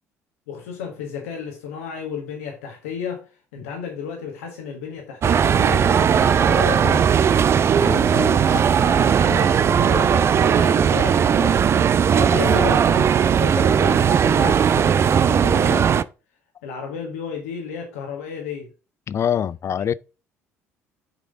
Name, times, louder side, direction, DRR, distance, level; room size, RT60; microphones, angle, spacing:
voice 1, 0.5-7.2 8.4-11.6 12.1-16.1 16.6-18.7, left 6 dB, 70° left, 1.4 m, -33 dB
sound 1, 5.2-16.0, right 7 dB, 35° right, 0.4 m, -18 dB
voice 2, 7.8-8.6 19.1-19.9, left 9 dB, 35° left, 0.4 m, -25 dB
7.3 x 5.1 x 3.7 m
figure-of-eight pair, 55°, 8 cm